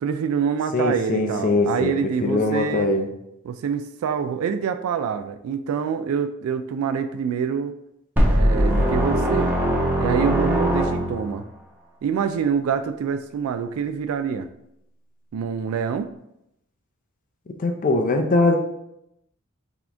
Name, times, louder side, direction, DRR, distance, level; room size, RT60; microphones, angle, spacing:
voice 1, 0.0-2.9 3.4-7.8 8.3-9.5 10.0-11.4 12.0-14.5 15.3-16.1, right 6 dB, 80° right, 13 dB, 0.3 m, -26 dB
voice 2, 0.7-3.1 17.6-18.6, left 2 dB, 40° left, 3 dB, 0.5 m, -21 dB
sound 1, 8.2-11.4, equal, 10° right, 0.7 m, -21 dB
4.1 x 2.9 x 3.4 m, 0.80 s
head